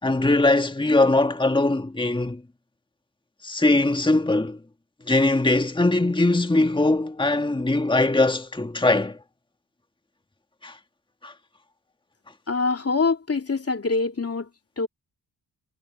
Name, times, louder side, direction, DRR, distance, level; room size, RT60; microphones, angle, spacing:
voice 1, 0.0-2.4 3.4-4.6 5.1-9.2 10.6-10.7 11.2-11.3, left 2 dB, 10° left, 1.7 m, -21 dB
voice 2, 12.5-14.5 14.8-14.9, left 4 dB, 35° left, 3.2 m, -24 dB
supercardioid pair, 50°, 41 cm